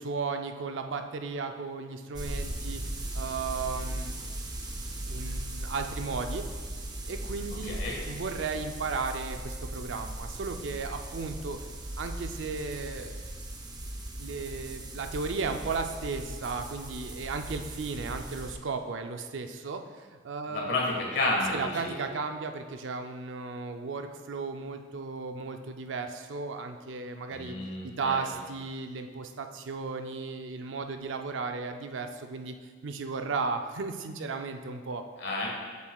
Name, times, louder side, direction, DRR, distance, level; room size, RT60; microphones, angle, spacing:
voice 1, 0.0-4.2 5.1-6.5 7.1-7.8 8.1-11.6 12.0-13.1 14.2-20.8 21.5-27.6 27.8-32.6 32.8-35.0, right 4 dB, 80° right, 6 dB, 0.5 m, -35 dB
sound 1, 2.1-18.6, right 1 dB, 20° right, 0.6 m, -38 dB
voice 2, 7.7-8.0 20.5-21.9 27.3-28.2 35.2-35.5, left 2 dB, 60° left, -3 dB, 1.5 m, -30 dB
7.4 x 7.3 x 2.3 m, 1.5 s
head